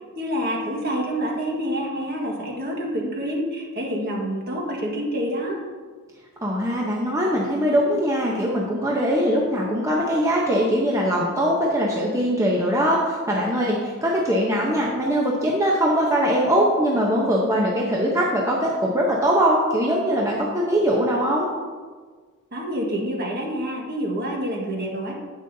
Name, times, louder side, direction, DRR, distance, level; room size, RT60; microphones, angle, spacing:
voice 1, 0.1-5.6 22.5-25.1, equal, 45° right, -1 dB, 1.6 m, -27 dB
voice 2, 6.4-21.5, equal, 15° right, -3 dB, 0.8 m, -21 dB
10.0 x 8.1 x 2.7 m, 1.5 s
head